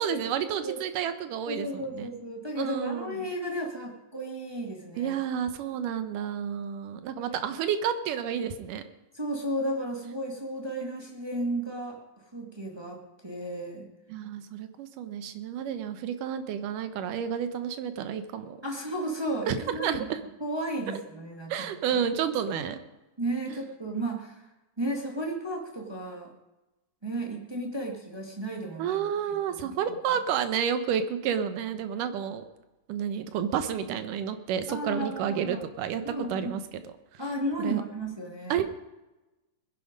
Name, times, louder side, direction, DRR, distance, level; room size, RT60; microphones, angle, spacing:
voice 1, 0.0-2.1 2.6-3.3 5.0-8.8 14.1-18.6 19.5-19.6 19.8-20.2 20.9-21.0 21.5-22.8 23.5-23.6 28.8-32.4 32.9-36.6 37.1-37.2 37.6-37.8 38.5-38.6, right 8 dB, 75° right, 10 dB, 2.4 m, -30 dB
voice 2, 1.4-5.1 9.1-12.0 12.3-13.9 18.6-20.0 20.4-22.0 23.2-24.5 24.8-26.3 27.0-29.4 29.9-30.0 34.7-35.6 36.0-36.6 37.2-38.6, right 1 dB, 20° right, 0 dB, 0.7 m, -34 dB
21.0 x 10.5 x 5.1 m, 1.0 s
omnidirectional pair, 4.0 m